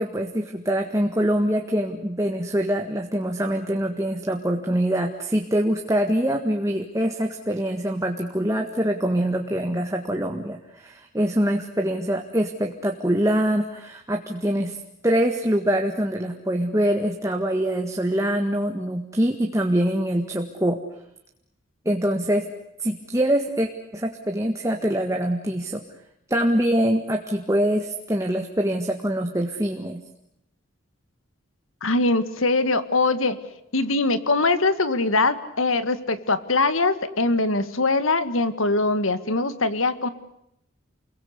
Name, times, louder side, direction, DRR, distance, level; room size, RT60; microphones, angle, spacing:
voice 1, 0.0-14.8 15.0-20.8 21.9-22.5 22.8-25.8 26.3-30.0, right 1 dB, 15° right, 3 dB, 1.7 m, -24 dB
voice 2, 31.8-33.4 33.7-40.1, left 3 dB, 85° left, 12 dB, 2.0 m, -22 dB
29.5 x 22.5 x 8.3 m, 0.80 s
head